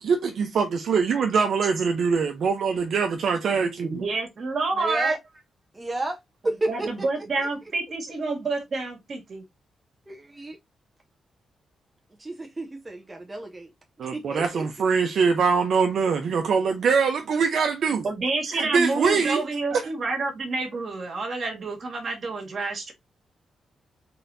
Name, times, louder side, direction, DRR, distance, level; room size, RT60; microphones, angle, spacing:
voice 1, 0.0-3.9 14.0-18.0 18.5-19.4 19.7-19.8, right 5 dB, 60° right, 0.8 m, -23 dB
voice 2, 3.8-5.2 6.4-9.4 18.0-22.9, right 3 dB, 40° right, 1.7 m, -28 dB
voice 3, 4.7-5.2 5.7-6.2 6.4-7.5 10.1-10.5 12.2-13.7 14.1-14.7, right 2 dB, 15° right, 0.6 m, -32 dB
4.0 x 3.9 x 2.7 m
wide cardioid pair, 150°, 0 cm